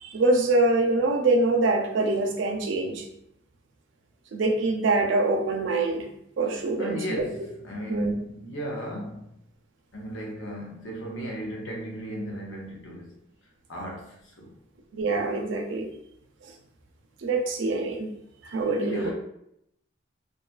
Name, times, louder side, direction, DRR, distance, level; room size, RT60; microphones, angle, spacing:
voice 1, 0.0-3.0 4.3-6.1 6.4-7.2 7.9-8.1 14.9-15.9 17.2-18.1 18.5-19.1, right 2 dB, 70° right, 3 dB, 0.4 m, -24 dB
voice 2, 6.8-9.3 9.9-13.2 13.7-14.5 18.8-19.1, equal, 75° left, -1 dB, 0.7 m, -35 dB
2.6 x 2.3 x 2.3 m, 0.75 s
head